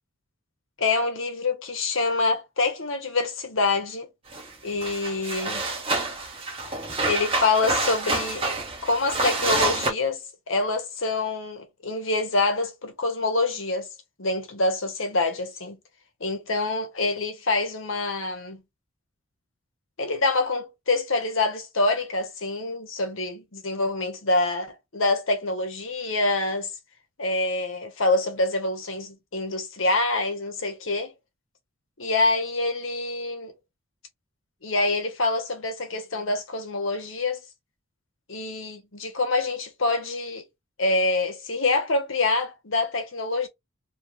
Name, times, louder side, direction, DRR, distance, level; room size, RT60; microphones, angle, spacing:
voice 1, 0.8-4.1 4.6-5.6 7.0-8.5 8.8-13.9 14.2-15.8 16.2-18.6 20.0-26.7 27.2-31.1 32.0-33.5 34.6-37.4 38.3-40.4 40.8-43.5, left 3 dB, 70° left, 1.2 m, -26 dB
sound 1, 4.3-4.5 4.8-9.9, right 2 dB, 25° right, 1.2 m, -27 dB
3.2 x 3.1 x 3.1 m
head